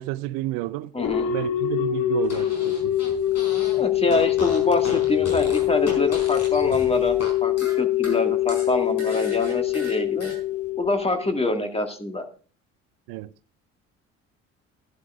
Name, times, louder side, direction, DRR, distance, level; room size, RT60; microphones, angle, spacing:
voice 1, 0.0-0.9 1.3-3.0 13.1-13.3, right 17 dB, 65° right, 0.6 m, -31 dB
voice 2, 0.9-1.3 3.7-10.3 10.8-12.2, left 2 dB, 15° left, 1.9 m, -26 dB
sound 1, 1.0-11.7, left 14 dB, 60° left, 1.6 m, -24 dB
Motorcycle, 1.3-9.7, left 1 dB, 85° left, 6.1 m, -46 dB
Fart, 2.2-3.8 4.1-7.3 7.6-10.4, left 2 dB, 40° left, 5.0 m, -36 dB
14.0 x 11.0 x 2.4 m
figure-of-eight pair, 50°, 38 cm